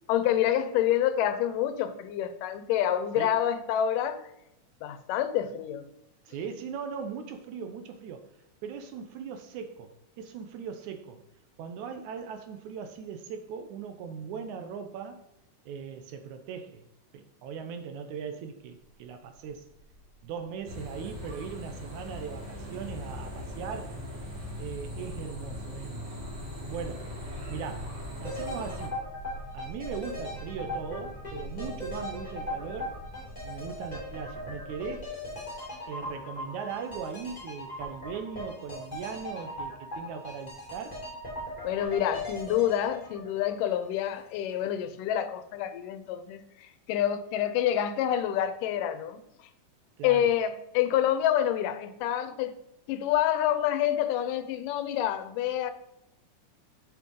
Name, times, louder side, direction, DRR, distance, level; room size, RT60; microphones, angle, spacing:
voice 1, 0.1-4.2 4.8-5.9 41.6-49.2 50.0-52.6 52.9-55.7, left 10 dB, 85° left, 2.3 m, -27 dB
voice 2, 6.3-8.3 8.6-11.2 11.6-15.2 15.7-16.9 17.1-19.7 20.2-24.0 24.6-26.1 26.7-27.1 27.5-29.0 29.5-32.9 33.4-35.2 35.9-41.0 50.0-50.3, right 6 dB, 75° right, 2.0 m, -39 dB
sound 1, 19.0-35.0, equal, 70° left, 0.9 m, -46 dB
sound 2, 20.7-28.9, left 1 dB, 55° right, 3.8 m, -40 dB
sound 3, 28.2-44.2 44.5-44.6, left 1 dB, 15° left, 2.2 m, -39 dB
7.0 x 6.8 x 3.7 m
omnidirectional pair, 3.7 m